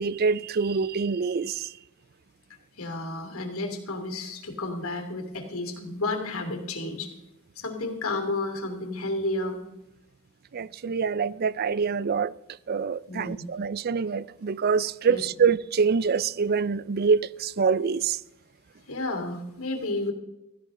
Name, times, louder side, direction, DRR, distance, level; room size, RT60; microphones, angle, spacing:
voice 1, 0.0-1.7 10.5-12.3 12.7-18.2, right 5 dB, 45° right, 0.4 m, -25 dB
voice 2, 2.8-7.1 7.6-9.6 13.1-13.5 15.1-15.2 18.9-20.1, left 2 dB, 90° left, 2.9 m, -31 dB
16.5 x 15.5 x 3.8 m
head